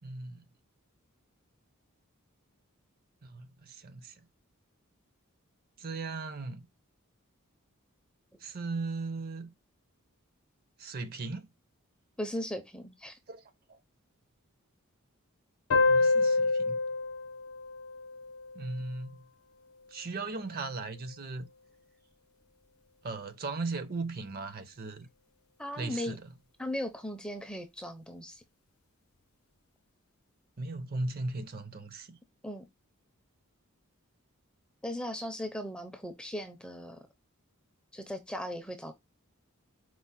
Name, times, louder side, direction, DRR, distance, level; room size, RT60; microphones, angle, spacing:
voice 1, 0.0-0.4 3.2-4.1 5.8-6.7 8.4-9.5 10.8-11.5 13.3-13.4 13.7-13.8 15.9-16.8 18.5-19.2 19.9-21.5 23.0-25.1 25.8-26.2 30.6-32.2, right 3 dB, 45° right, 0.6 m, -37 dB
voice 2, 12.2-13.2 25.6-26.2 26.6-28.4 32.4-32.6 34.8-37.0 37.9-38.9, left 1 dB, 5° left, 0.5 m, -37 dB
sound 1, 15.7-18.9, left 3 dB, 75° left, 0.6 m, -27 dB
4.7 x 2.1 x 4.0 m
head